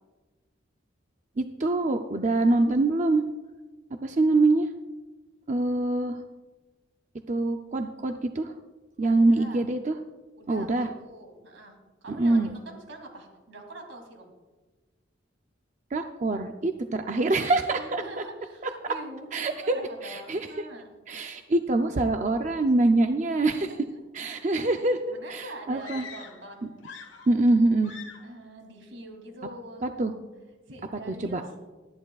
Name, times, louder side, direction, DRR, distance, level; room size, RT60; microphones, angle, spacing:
voice 1, 1.4-3.2 4.0-4.7 5.5-6.2 7.3-8.5 9.0-10.0 10.5-10.9 12.1-12.5 15.9-18.0 19.3-19.8 20.0-20.5 21.1-23.7 24.1-25.0 25.3-26.0 26.6-26.7 27.3-27.9 29.8-30.1 31.1-31.4, right 2 dB, 40° right, 6 dB, 0.5 m, -24 dB
voice 2, 9.0-9.6 10.4-14.3 17.8-20.9 23.7-24.3 24.6-24.7 25.1-26.7 28.2-29.9 30.7-31.5, right 1 dB, 85° right, 3 dB, 2.9 m, -44 dB
sound 1, 25.8-26.5 26.8-27.5 27.8-28.4, left 6 dB, 85° left, 1.3 m, -44 dB
19.0 x 13.5 x 2.4 m, 1.2 s
head